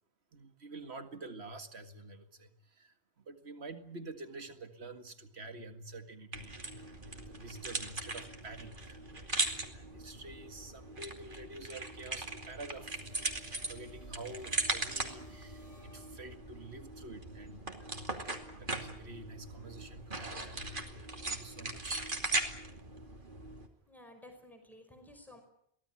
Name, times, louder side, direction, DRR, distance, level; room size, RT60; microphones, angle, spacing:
voice 1, 0.3-9.3 9.7-13.4 13.7-22.1, right 2 dB, 85° right, 8 dB, 2.3 m, -48 dB
sound 1, 6.3-23.7, right 2 dB, 55° right, 2.9 m, -39 dB
sound 2, 12.8-16.7, left 3 dB, 15° right, 3.8 m, -62 dB
voice 2, 23.9-25.4, left 1 dB, ahead, 4 dB, 5.2 m, -54 dB
23.5 x 17.5 x 9.8 m, 0.73 s
omnidirectional pair, 1.1 m